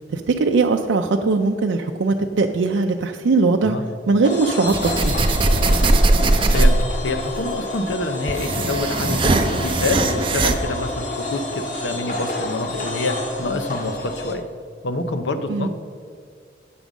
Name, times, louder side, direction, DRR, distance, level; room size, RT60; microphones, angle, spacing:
voice 1, 0.1-3.8 4.1-5.1 15.5-15.7, right 3 dB, 85° right, 4 dB, 0.4 m, -20 dB
sound 1, 4.2-14.4, left 2 dB, 45° left, 0.9 m, -29 dB
sound 2, 4.7-7.1 7.9-10.6, right 2 dB, 25° right, 0.4 m, -19 dB
voice 2, 6.5-14.4 14.8-15.7, left 2 dB, 80° left, 7 dB, 0.7 m, -27 dB
8.6 x 6.1 x 5.2 m, 2.3 s
head